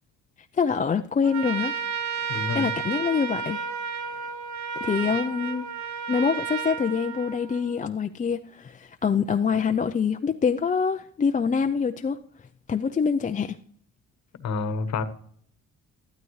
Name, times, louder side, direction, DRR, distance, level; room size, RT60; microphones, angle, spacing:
voice 1, 0.5-1.7 2.2-3.7 4.8-5.6 6.1-12.2 12.7-13.6, left 6 dB, 25° left, 0.5 m, -25 dB
Trumpet, 1.2-7.8, right 7 dB, 65° right, 1.3 m, -32 dB
voice 2, 2.3-2.7 14.4-15.0, left 4 dB, 65° left, 1.2 m, -28 dB
13.5 x 12.0 x 3.2 m
cardioid pair, 90°, 30 cm